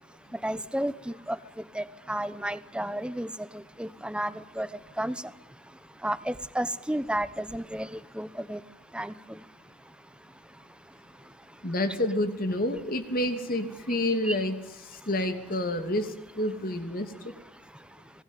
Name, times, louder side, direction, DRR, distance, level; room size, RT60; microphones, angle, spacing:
voice 1, 0.4-1.4 1.7-3.3 3.8-4.7 5.0-5.2 6.0-8.6 8.9-9.1 14.2-14.4, right 1 dB, 5° right, 16 dB, 1.0 m, -32 dB
voice 2, 11.6-14.6 15.1-16.0 16.4-17.1, left 1 dB, 55° left, 8 dB, 3.0 m, -28 dB
27.0 x 19.0 x 9.3 m, 0.93 s
head